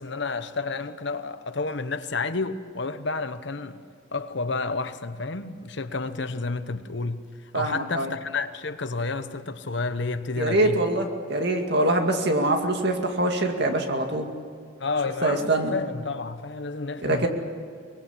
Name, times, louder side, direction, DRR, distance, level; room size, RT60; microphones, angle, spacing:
voice 1, 0.0-3.8 4.1-10.8 14.8-17.3, left 3 dB, 55° left, 1.0 m, -30 dB
voice 2, 7.5-8.1 10.4-14.3 15.2-15.7 17.0-17.3, right 1 dB, 55° right, 2.3 m, -24 dB
23.5 x 21.0 x 8.4 m
head